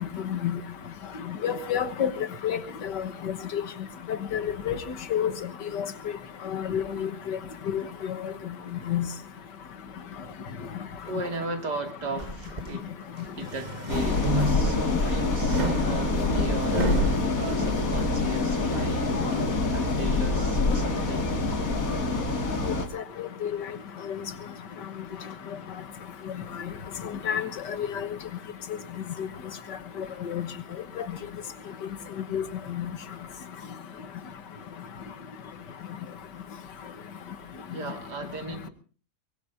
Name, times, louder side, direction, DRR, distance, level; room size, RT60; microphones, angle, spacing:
voice 1, 1.4-2.1 2.4-2.6 3.5-3.6 4.3-4.8 5.1-5.3 5.7-5.9 6.5-7.4 7.7-7.8 8.9-9.1 22.9-23.5 27.3-27.5 27.8-27.9 30.3-30.4 31.0-31.1 32.3-32.4 32.8-32.9, left 9 dB, 80° left, 11 dB, 2.0 m, -28 dB
voice 2, 11.1-13.0 13.4-21.4 37.7-38.7, right 3 dB, 70° right, 6 dB, 3.0 m, -37 dB
sound 1, 12.2-12.7 13.3-14.9 15.5-17.2, right 2 dB, 30° right, 1.1 m, -31 dB
sound 2, 13.9-22.9, left 3 dB, 50° left, 2.6 m, -26 dB
23.0 x 21.0 x 2.7 m, 0.38 s
omnidirectional pair, 1.9 m